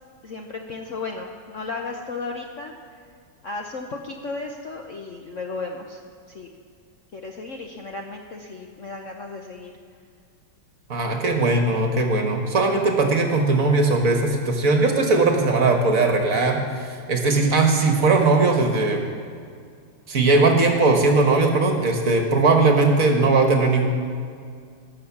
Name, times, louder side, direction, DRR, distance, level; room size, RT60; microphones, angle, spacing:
voice 1, 0.2-2.7 3.4-6.0 6.3-6.5 7.1-9.7, left 3 dB, 55° left, 2 dB, 0.9 m, -34 dB
voice 2, 10.9-19.0 20.1-23.9, right 3 dB, 45° right, 3 dB, 1.6 m, -19 dB
18.5 x 6.4 x 7.2 m, 2.3 s
omnidirectional pair, 2.2 m